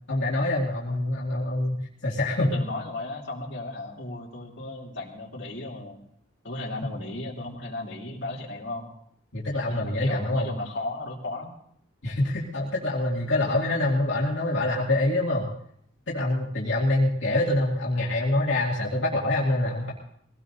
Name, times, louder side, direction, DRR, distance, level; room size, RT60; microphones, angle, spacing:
voice 1, 0.1-2.5 9.3-10.5 12.0-15.5 16.1-19.9, left 1 dB, 80° left, -5 dB, 2.3 m, -25 dB
voice 2, 2.4-6.0 6.4-8.9 9.6-11.5 13.4-13.5, left 2 dB, 65° left, -3 dB, 3.0 m, -35 dB
22.5 x 17.5 x 2.7 m, 0.68 s
head